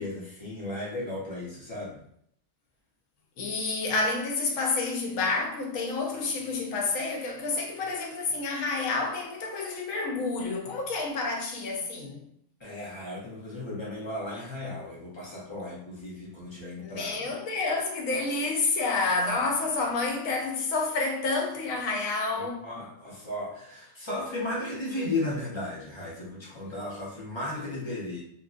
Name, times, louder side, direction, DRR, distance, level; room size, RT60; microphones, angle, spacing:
voice 1, 0.0-2.0 12.6-17.3 19.2-19.3 22.3-28.2, left 2 dB, 40° left, 0.4 m, -35 dB
voice 2, 3.4-12.3 16.8-22.7, left 3 dB, 65° left, 1.0 m, -29 dB
2.9 x 2.6 x 2.4 m
omnidirectional pair, 1.6 m